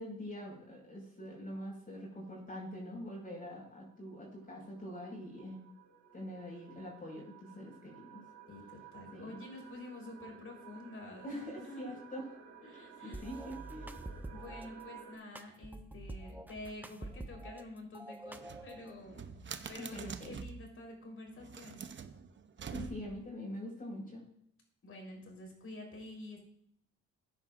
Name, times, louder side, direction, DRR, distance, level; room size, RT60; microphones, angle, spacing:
voice 1, 0.0-5.6 6.1-8.2 9.1-9.4 11.2-12.4 13.0-13.9 19.8-20.4 22.7-24.2, equal, 30° left, -3 dB, 5.4 m, -44 dB
sound 1, 1.7-1.8 3.3-15.2, right 7 dB, 75° right, 4.1 m, -55 dB
voice 2, 8.5-12.0 12.6-13.3 14.3-19.2 19.7-21.9 24.8-26.4, left 2 dB, 45° left, 0 dB, 4.2 m, -48 dB
sound 2, 13.1-14.7 15.4-17.6 17.9-18.9, right 1 dB, 5° right, 0.8 m, -46 dB
sound 3, 18.3-20.7 21.4-23.3, right 6 dB, 40° right, 0.8 m, -46 dB
15.5 x 9.7 x 2.6 m, 0.68 s
cardioid pair, 90°, 30 cm